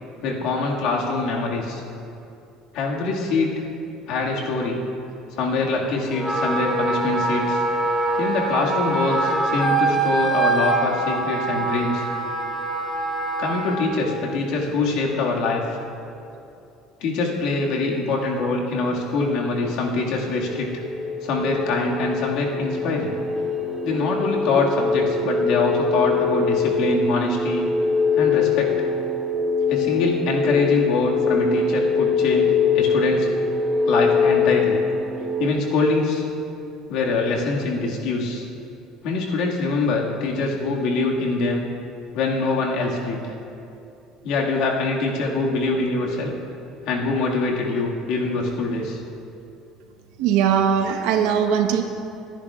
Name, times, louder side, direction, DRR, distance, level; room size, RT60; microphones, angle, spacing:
voice 1, 0.2-1.8 2.7-3.6 4.1-4.8 5.3-7.6 8.2-12.1 13.4-15.6 17.0-20.7 21.2-23.2 23.8-27.6 28.1-28.9 29.7-33.3 33.8-34.8 35.4-36.3 36.9-38.4 39.0-41.7 42.1-43.3 44.2-46.3 46.9-49.0, left 3 dB, 65° left, -2 dB, 1.8 m, -24 dB
Wind instrument woodwind instrument, 6.1-13.8, right 2 dB, ahead, 1.4 m, -24 dB
sound 1, 20.4-35.5, left 4 dB, 25° right, 0.9 m, -23 dB
voice 2, 50.2-51.8, right 8 dB, 70° right, 5 dB, 1.0 m, -20 dB
24.0 x 10.0 x 2.4 m, 2.7 s
cardioid pair, 150°, 0 cm